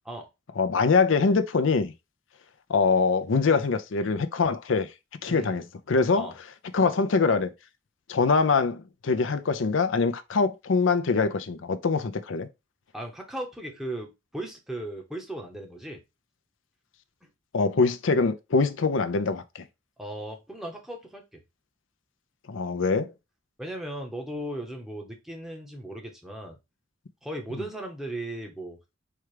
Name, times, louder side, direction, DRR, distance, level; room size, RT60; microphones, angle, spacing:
voice 1, 0.6-1.9 2.7-4.9 5.2-6.3 6.7-7.5 8.1-12.5 17.5-19.6 22.5-23.1, left 4 dB, 75° left, 0.5 m, -24 dB
voice 2, 5.3-5.6 6.1-6.4 12.9-16.0 17.2-17.3 20.0-21.4 23.6-26.6 27.2-28.8, right 1 dB, ahead, 0.9 m, -37 dB
4.5 x 2.4 x 4.8 m
head